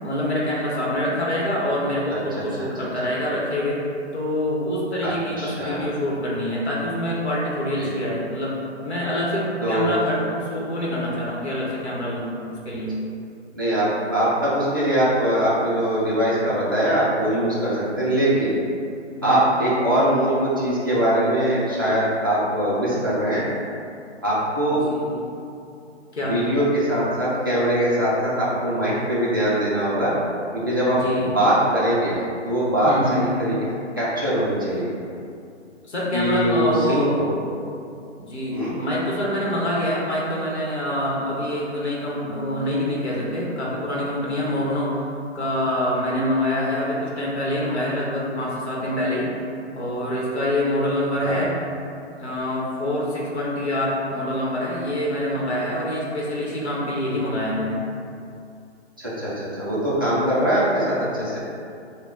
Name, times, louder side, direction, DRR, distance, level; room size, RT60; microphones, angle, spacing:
voice 1, 0.0-3.8 4.1-8.5 8.8-13.0 19.2-19.5 24.7-25.2 26.1-26.4 30.9-31.3 32.9-33.2 35.8-37.2 38.2-45.0 45.3-49.3 49.7-51.6 52.2-57.8, left 1 dB, 65° left, -5 dB, 1.0 m, -25 dB
voice 2, 5.0-5.9 7.8-7.9 9.6-9.9 13.5-18.6 19.2-23.4 24.2-24.9 26.2-30.1 30.5-32.1 32.4-33.6 34.0-34.9 36.1-37.3 38.5-38.7 51.2-51.4 59.0-61.4, right 1 dB, 20° right, -10 dB, 0.4 m, -22 dB
3.3 x 2.2 x 3.8 m, 2.5 s
figure-of-eight pair, 140°, 36 cm